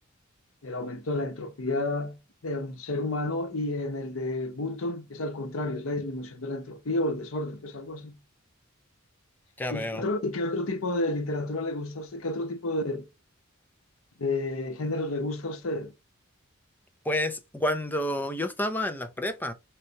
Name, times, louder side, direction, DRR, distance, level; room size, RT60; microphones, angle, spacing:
voice 1, 0.6-8.2 9.7-13.1 14.2-15.9, left 2 dB, 85° left, 0.9 m, -31 dB
voice 2, 9.6-10.0 17.0-19.5, left 1 dB, 10° left, 0.5 m, -29 dB
4.4 x 3.3 x 2.7 m
head